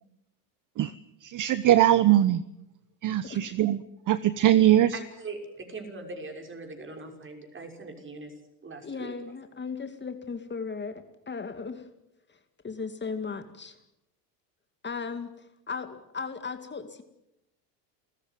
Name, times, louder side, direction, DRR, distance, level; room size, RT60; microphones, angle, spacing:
voice 1, 1.2-2.4 3.0-3.8 4.1-4.9, right 12 dB, 40° right, 1.0 m, -21 dB
voice 2, 4.9-8.3 8.6-9.1, right 3 dB, 25° right, 6.3 m, -41 dB
voice 3, 8.8-11.9 12.3-13.8 14.8-17.0, left 5 dB, 20° left, 2.3 m, -37 dB
28.5 x 14.5 x 9.4 m
supercardioid pair, 95°, 48 cm